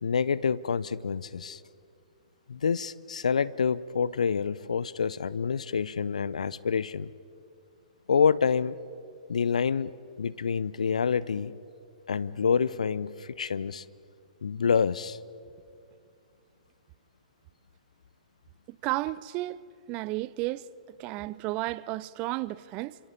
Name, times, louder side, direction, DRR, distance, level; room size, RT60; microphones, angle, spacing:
voice 1, 0.0-1.6 2.5-7.1 8.1-8.8 9.3-11.5 12.1-13.8 14.4-15.2, left 6 dB, 65° left, 0.7 m, -27 dB
voice 2, 18.8-20.7 21.0-23.0, right 18 dB, 30° right, 0.5 m, -33 dB
29.5 x 26.0 x 5.5 m
figure-of-eight pair, 115°, 4 cm